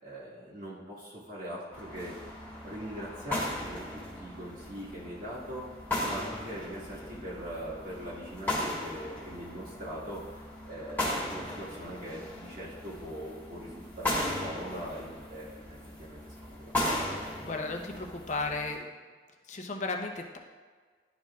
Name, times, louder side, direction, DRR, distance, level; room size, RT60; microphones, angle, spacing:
voice 1, 0.0-2.1 2.6-3.8 4.1-5.7 6.0-16.7, equal, 50° right, -8 dB, 1.7 m, -41 dB
sound 1, 1.7-18.7, left 1 dB, 10° left, 1.6 m, -37 dB
voice 2, 17.1-18.9 19.5-20.4, left 3 dB, 40° left, 3 dB, 0.7 m, -35 dB
11.5 x 4.6 x 2.4 m, 1.5 s
head